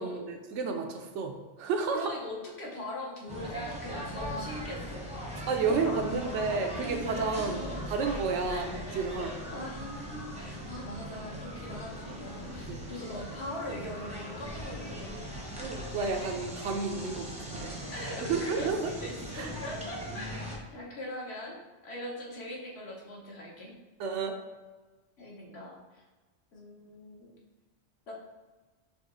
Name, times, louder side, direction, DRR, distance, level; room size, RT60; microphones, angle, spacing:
voice 1, 0.0-2.1 5.5-9.4 12.7-12.8 15.6-17.8 18.3-18.9 19.3-19.5 24.0-24.3, right 4 dB, 80° right, 4 dB, 0.9 m, -31 dB
voice 2, 1.9-5.1 5.7-7.8 8.5-9.0 9.5-15.2 17.9-18.7 19.0-21.6 21.8-23.7 25.2-26.0 26.5-27.3 28.1-28.2, left 1 dB, 60° left, -3 dB, 1.2 m, -41 dB
sound 1, 3.3-20.6, equal, 5° right, 0.6 m, -40 dB
4.1 x 2.8 x 3.7 m, 1.2 s
omnidirectional pair, 1.2 m